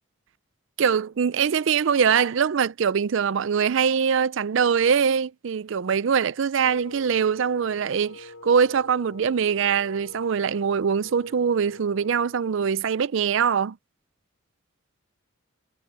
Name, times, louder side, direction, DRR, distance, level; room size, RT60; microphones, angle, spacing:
voice 1, 0.8-13.8, right 7 dB, 60° right, 0.4 m, -23 dB
Wind instrument woodwind instrument, 6.6-12.4, left 2 dB, 85° left, 3.3 m, -45 dB
head